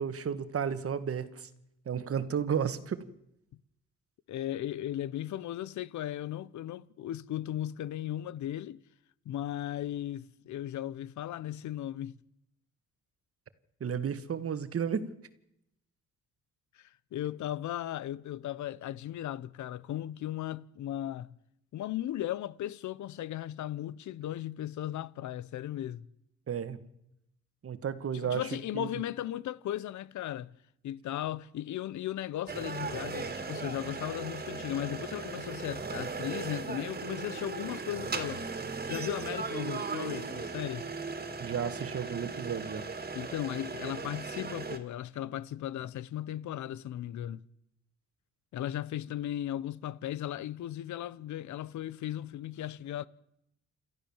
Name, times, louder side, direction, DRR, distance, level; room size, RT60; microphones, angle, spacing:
voice 1, 0.0-1.5 1.9-3.0 13.8-15.0 26.5-26.8 27.6-28.4 28.7-28.9 41.4-42.9, right 7 dB, 50° right, 1.8 m, -33 dB
voice 2, 4.3-8.8 9.3-12.2 16.8-21.4 21.7-26.1 28.1-30.6 30.8-38.4 38.9-40.9 43.1-47.4 48.5-53.1, left 12 dB, 70° left, 0.9 m, -36 dB
sound 1, 32.5-44.8, right 4 dB, 30° right, 2.6 m, -37 dB
28.5 x 13.0 x 7.3 m
cardioid pair, 90°, 30 cm